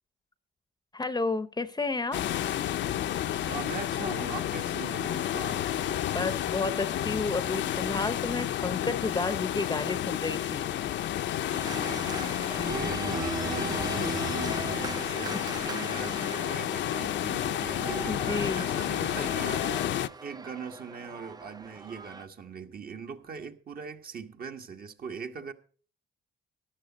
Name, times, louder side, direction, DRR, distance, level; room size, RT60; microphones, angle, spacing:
voice 1, 0.9-2.2 6.1-10.6 12.5-13.1 14.5-14.6 15.1-15.4 18.1-18.6, left 3 dB, 20° left, 0.7 m, -32 dB
sound 1, 2.1-20.1, left 11 dB, 65° left, 0.6 m, -31 dB
voice 2, 3.5-6.0 11.7-19.7 20.2-25.5, right 6 dB, 50° right, 1.4 m, -41 dB
Organ, 11.5-22.3, right 4 dB, 20° right, 0.5 m, -39 dB
13.5 x 11.0 x 4.1 m
cardioid pair, 90°, 20 cm